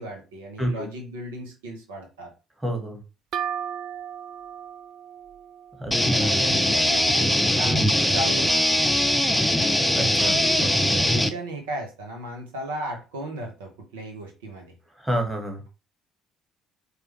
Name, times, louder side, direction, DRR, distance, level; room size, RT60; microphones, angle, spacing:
voice 1, 0.0-2.3 6.1-7.3 7.6-9.3 10.3-14.7, right 1 dB, 75° right, 2 dB, 0.8 m, -36 dB
voice 2, 2.6-3.0 5.8-6.1 9.9-10.3 15.0-15.6, right 1 dB, 10° right, 3 dB, 1.4 m, -28 dB
sound 1, 3.3-6.9, right 9 dB, 55° right, 0.3 m, -36 dB
sound 2, 5.9-11.3, equal, 5° left, 0.5 m, -21 dB
4.7 x 2.4 x 3.1 m, 0.30 s
figure-of-eight pair, 50°, 0 cm